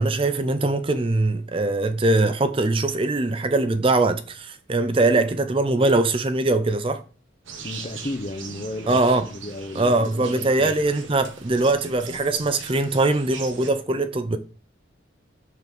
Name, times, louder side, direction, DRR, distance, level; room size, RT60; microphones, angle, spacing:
voice 1, 0.0-7.0 8.9-9.3 9.8-14.4, right 2 dB, 30° right, 0.5 m, -22 dB
sound 1, 7.4-13.7, right 5 dB, 85° right, 1.3 m, -40 dB
voice 2, 7.6-10.8, left 1 dB, 35° left, 0.7 m, -34 dB
5.7 x 5.3 x 6.0 m
head